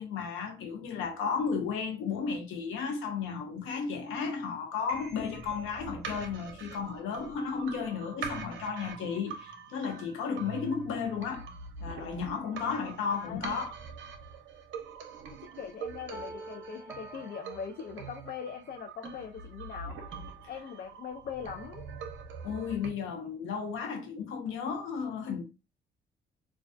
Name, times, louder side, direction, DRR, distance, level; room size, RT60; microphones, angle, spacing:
voice 1, 0.0-11.4 11.8-13.7 22.4-25.5, left 6 dB, 90° left, 0.7 m, -34 dB
sound 1, 4.9-22.9, right 5 dB, 70° right, 0.6 m, -44 dB
voice 2, 13.1-13.4 15.6-20.0 20.5-21.9, left 7 dB, 50° left, 0.4 m, -41 dB
sound 2, 16.1-19.1, right 2 dB, 10° right, 0.4 m, -47 dB
2.3 x 2.2 x 2.4 m
cardioid pair, 90°, 20 cm